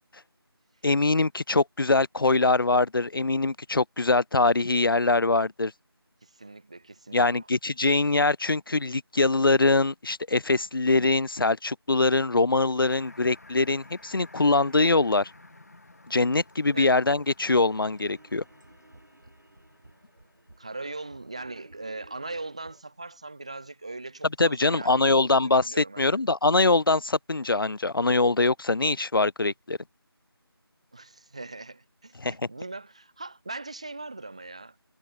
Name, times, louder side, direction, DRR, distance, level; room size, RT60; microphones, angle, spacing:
voice 1, 0.8-5.7 7.1-15.3 16.1-18.4 24.4-29.8 32.2-32.4, left 3 dB, 60° left, 0.5 m, -23 dB
voice 2, 6.2-7.5 16.7-16.9 20.6-26.2 30.9-34.8, right 2 dB, 15° right, 1.2 m, -40 dB
sound 1, 12.8-20.9, left 2 dB, 40° left, 3.5 m, -53 dB
sound 2, 17.6-22.8, right 2 dB, 50° right, 7.1 m, -54 dB
figure-of-eight pair, 175°, 13 cm